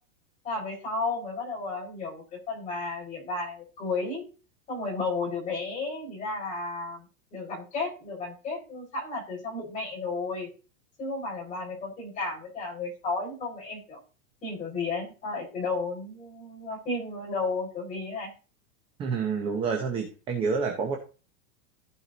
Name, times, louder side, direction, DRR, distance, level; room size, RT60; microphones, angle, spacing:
voice 1, 0.4-4.3 4.7-7.1 7.3-10.5 11.0-14.0 14.4-18.3, left 3 dB, 15° left, -2 dB, 4.5 m, -33 dB
voice 2, 19.0-21.0, right 5 dB, 10° right, 2 dB, 0.8 m, -28 dB
15.0 x 5.0 x 4.0 m, 0.34 s
supercardioid pair, 180°, 44 cm